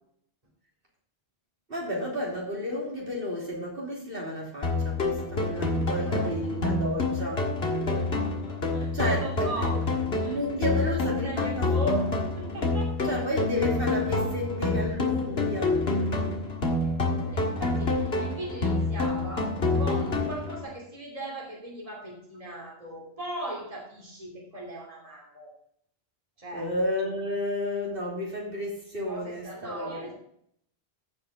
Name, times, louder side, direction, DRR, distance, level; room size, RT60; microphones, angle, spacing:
voice 1, 1.7-7.5 8.9-9.7 10.3-11.7 13.0-15.9 26.5-30.1, left 1 dB, 60° right, -3 dB, 3.3 m, -32 dB
sound 1, 4.6-20.6, left 2 dB, 70° left, 2.0 m, -27 dB
voice 2, 5.9-6.2 7.9-9.7 10.1-10.4 10.7-13.1 16.5-25.5 26.4-26.7 29.0-30.1, right 1 dB, 35° right, -2 dB, 2.9 m, -38 dB
15.5 x 5.8 x 3.9 m, 0.68 s
omnidirectional pair, 1.1 m